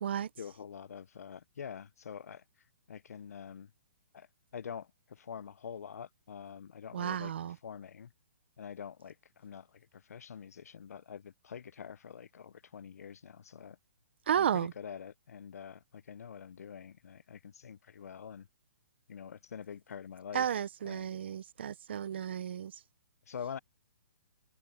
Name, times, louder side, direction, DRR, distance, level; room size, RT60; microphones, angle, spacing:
voice 1, 0.4-2.4 2.9-3.7 4.1-4.3 4.5-7.3 7.6-8.1 8.6-13.8 14.4-18.5 19.1-20.5 20.9-21.1 23.3-23.6, left 7 dB, 80° left, 0.5 m, -46 dB
voice 2, 6.9-7.6 14.3-14.7 20.3-22.7, right 9 dB, 45° right, 0.6 m, -33 dB
hypercardioid pair, 175°, 8 cm